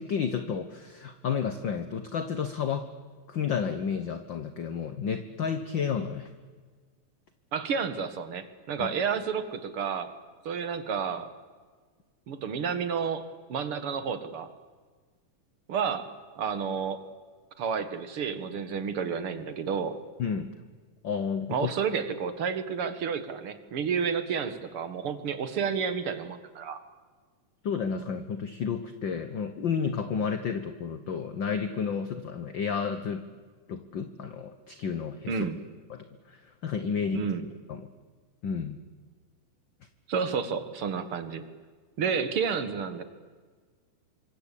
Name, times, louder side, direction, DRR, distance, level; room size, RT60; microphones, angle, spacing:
voice 1, 0.0-2.9 3.3-6.3 8.8-8.9 20.2-20.5 21.0-21.7 27.6-33.2 33.7-35.5 35.9-37.2 37.7-37.9 38.4-38.8, left 6 dB, 60° left, 9 dB, 1.3 m, -31 dB
voice 2, 7.5-10.1 10.5-11.3 12.3-13.2 13.5-14.5 15.7-16.1 16.4-17.0 17.6-20.0 21.5-26.8 35.3-35.6 37.1-37.5 40.1-41.5 42.0-43.0, right 6 dB, 50° right, 11 dB, 2.2 m, -30 dB
28.0 x 25.0 x 8.5 m, 1.5 s
omnidirectional pair, 3.6 m